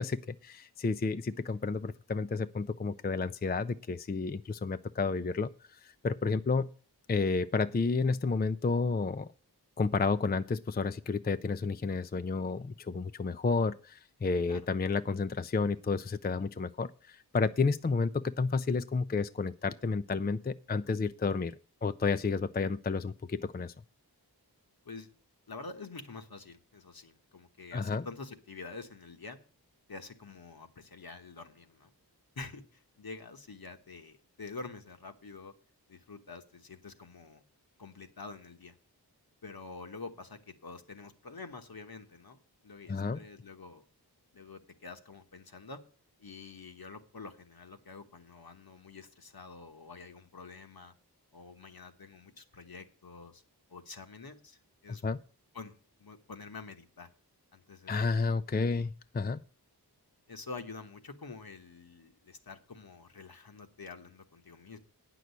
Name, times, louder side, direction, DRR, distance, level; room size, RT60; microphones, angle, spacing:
voice 1, 0.0-6.7 7.1-9.3 9.8-23.7 27.7-28.0 42.9-43.2 55.0-55.2 57.9-59.4, left 4 dB, 25° left, 12 dB, 0.4 m, -31 dB
voice 2, 25.5-29.4 29.9-31.9 32.4-35.5 35.9-37.4 37.8-38.7 39.4-42.4 42.6-43.8 44.3-45.8 46.2-50.9 51.3-53.4 53.7-55.0 55.5-55.7 56.0-57.1 57.5-58.2 60.3-64.8, left 4 dB, 65° left, 7 dB, 1.2 m, -47 dB
9.3 x 6.1 x 8.2 m, 0.41 s
wide cardioid pair, 60°, 40 cm